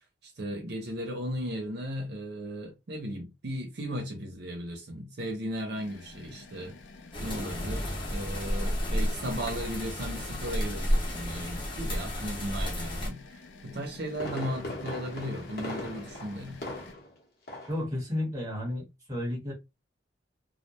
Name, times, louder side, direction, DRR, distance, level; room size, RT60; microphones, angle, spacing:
voice 1, 0.2-6.8 7.2-16.6, equal, 60° right, 0.7 m, -36 dB
sound 1, 5.7-16.9, left 3 dB, 85° left, 0.5 m, -51 dB
sound 2, 7.1-13.1, equal, 30° left, 0.8 m, -31 dB
Fireworks, 13.7-17.2 17.5-17.8 18.2-18.3, left 1 dB, 55° left, 1.0 m, -39 dB
voice 2, 17.7-19.5, left 1 dB, 20° right, 1.2 m, -32 dB
2.2 x 2.1 x 2.9 m
head